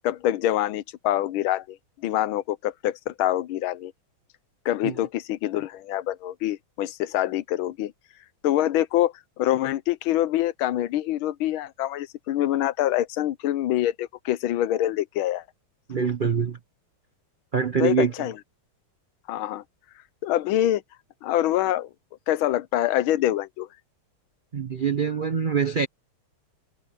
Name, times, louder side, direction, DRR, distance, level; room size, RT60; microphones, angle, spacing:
voice 1, 0.0-1.8 2.0-3.9 4.6-7.9 8.4-15.4 17.8-18.3 19.3-19.6 20.2-20.8 21.2-21.9 22.3-23.7, left 13 dB, 80° left, 1.5 m, -25 dB
voice 2, 15.9-16.6 17.5-18.3 24.5-25.9, right 6 dB, 70° right, 0.4 m, -24 dB
omnidirectional pair, 2.3 m